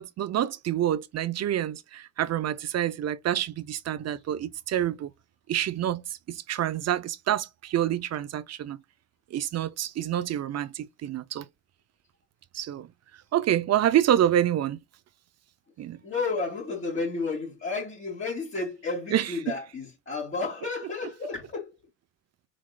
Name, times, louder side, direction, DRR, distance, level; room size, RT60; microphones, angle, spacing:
voice 1, 0.0-5.1 5.5-8.8 9.3-11.5 12.5-12.9 13.3-14.8 15.8-16.0 19.1-19.5, right 11 dB, 60° right, 0.6 m, -27 dB
voice 2, 16.0-21.7, left 3 dB, 40° left, 2.7 m, -32 dB
4.9 x 3.8 x 2.2 m
cardioid pair, 90°, 30 cm